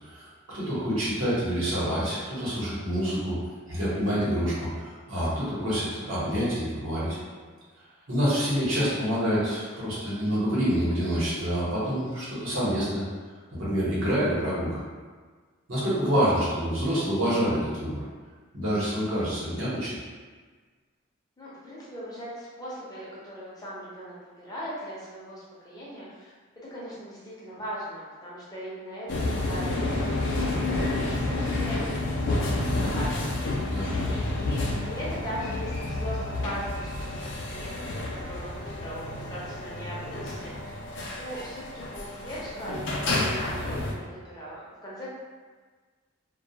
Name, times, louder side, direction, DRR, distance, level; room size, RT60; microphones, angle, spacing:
voice 1, 0.5-3.4 3.7-7.2 8.1-13.0 13.6-14.8 15.7-18.0 18.5-19.9 33.6-33.9, equal, 70° right, -9 dB, 1.0 m, -27 dB
voice 2, 21.4-26.3 26.7-30.8 31.1-33.3 33.8-37.7 38.3-40.5 41.2-45.1, equal, 20° left, -8 dB, 0.6 m, -39 dB
sound 1, 29.1-43.9, left 2 dB, 60° left, 0.4 m, -30 dB
2.3 x 2.2 x 2.8 m, 1.5 s
head